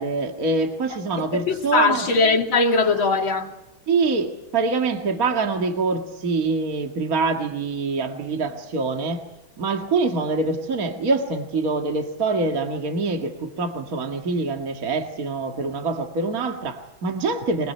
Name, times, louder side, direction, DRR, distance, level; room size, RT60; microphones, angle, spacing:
voice 1, 0.0-2.1 3.9-9.2 9.6-17.7, right 3 dB, 45° right, 2.3 m, -25 dB
voice 2, 1.3-3.6, left 3 dB, 70° left, 3.3 m, -20 dB
26.0 x 20.5 x 9.5 m
omnidirectional pair, 2.2 m